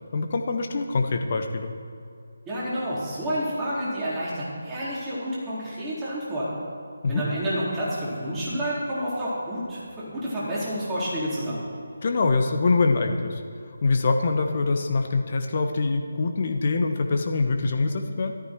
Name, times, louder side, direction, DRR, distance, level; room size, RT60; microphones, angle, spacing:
voice 1, 0.1-1.7 7.0-7.3 12.0-13.4 13.8-18.3, left 3 dB, 40° left, 5 dB, 1.1 m, -24 dB
voice 2, 2.5-6.5 7.1-11.6, equal, 10° right, -9 dB, 4.0 m, -29 dB
14.5 x 13.0 x 4.6 m, 2.6 s
figure-of-eight pair, 155°, 0 cm